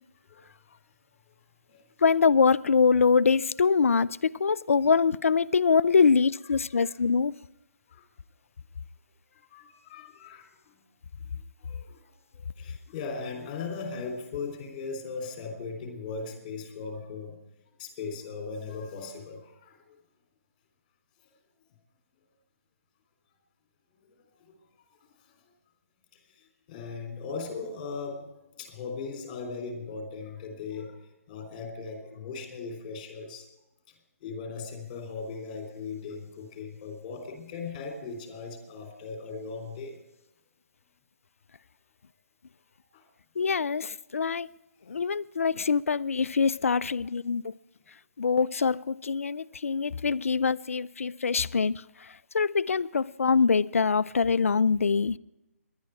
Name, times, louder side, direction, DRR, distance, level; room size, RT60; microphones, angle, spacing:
voice 1, 0.3-0.8 1.7-1.8 6.7-6.9 7.9-8.0 9.3-10.8 11.6-17.3 17.8-19.8 24.2-24.6 26.4-28.3 28.6-31.0 31.3-33.5 34.2-40.0 42.9-43.0 44.8-45.0 47.3-47.4, left 4 dB, 25° left, 3.4 m, -38 dB
voice 2, 2.0-7.4 43.4-44.5 44.9-47.5 48.2-55.2, left 5 dB, 60° left, 0.5 m, -24 dB
19.5 x 11.0 x 4.7 m
figure-of-eight pair, 145°, 8 cm